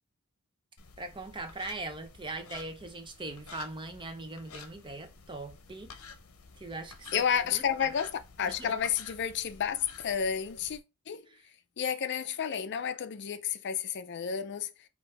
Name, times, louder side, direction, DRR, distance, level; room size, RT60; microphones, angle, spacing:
sound 1, 0.8-10.8, left 5 dB, 80° left, 0.8 m, -51 dB
voice 1, 1.0-5.9 6.6-7.9 8.5-8.7 11.3-11.4, right 2 dB, 20° right, 0.7 m, -41 dB
voice 2, 7.1-10.8 11.1-11.3 11.8-14.7, left 8 dB, 55° left, 0.5 m, -31 dB
5.4 x 2.6 x 3.3 m
head